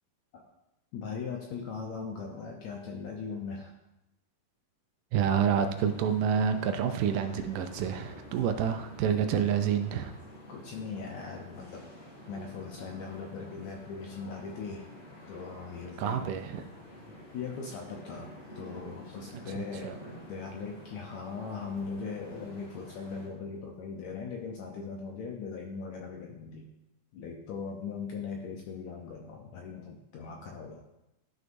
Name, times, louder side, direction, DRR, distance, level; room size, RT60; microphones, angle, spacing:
voice 1, 0.9-3.7 10.5-11.9 12.3-14.9 15.3-16.3 17.3-26.7 27.1-30.8, left 5 dB, 75° left, 1 dB, 1.7 m, -39 dB
voice 2, 5.1-10.1 16.0-16.7 19.3-20.0, right 8 dB, 80° right, 7 dB, 2.1 m, -28 dB
sound 1, 5.2-23.3, equal, 35° left, 2.3 m, -49 dB
12.5 x 6.4 x 2.6 m, 0.92 s
omnidirectional pair, 4.0 m